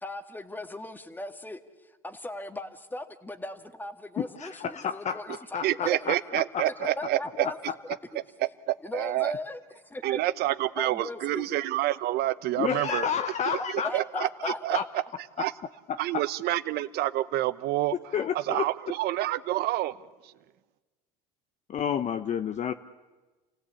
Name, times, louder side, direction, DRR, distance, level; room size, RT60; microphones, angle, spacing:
voice 1, 0.0-6.1 7.0-7.6 8.1-8.2 8.8-10.2 10.8-11.6 13.8-15.0, left 1 dB, 10° left, 8 dB, 1.8 m, -38 dB
voice 2, 4.2-6.6 7.4-7.7 12.6-14.8 15.4-15.5 16.1-16.2 18.1-18.7 21.7-22.7, left 8 dB, 35° left, 9 dB, 0.8 m, -31 dB
voice 3, 5.6-7.5 8.4-9.3 10.0-13.1 13.5-14.3 14.6-15.0 15.4-15.5 16.0-18.0 18.3-20.0, right 15 dB, 60° right, 15 dB, 1.0 m, -28 dB
28.0 x 16.5 x 8.4 m, 1.3 s
hypercardioid pair, 85°, 19 cm